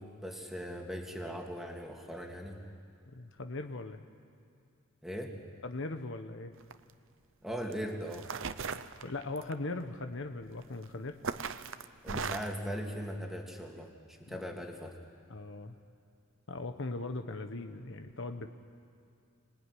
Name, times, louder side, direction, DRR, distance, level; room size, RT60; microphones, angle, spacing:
voice 1, 0.0-2.6 5.0-5.4 7.4-8.3 12.0-13.9 14.3-15.0, equal, ahead, 1 dB, 2.5 m, -39 dB
voice 2, 3.1-4.0 5.6-6.5 8.7-11.2 14.3-14.5 15.3-15.8 16.5-18.5, left 2 dB, 60° left, 7 dB, 1.1 m, -39 dB
sound 1, 6.6-6.9 7.7-7.8 8.1-9.5 10.6-10.8 11.2-12.6, right 5 dB, 65° right, 0.8 m, -37 dB
26.0 x 19.5 x 10.0 m, 2.5 s
head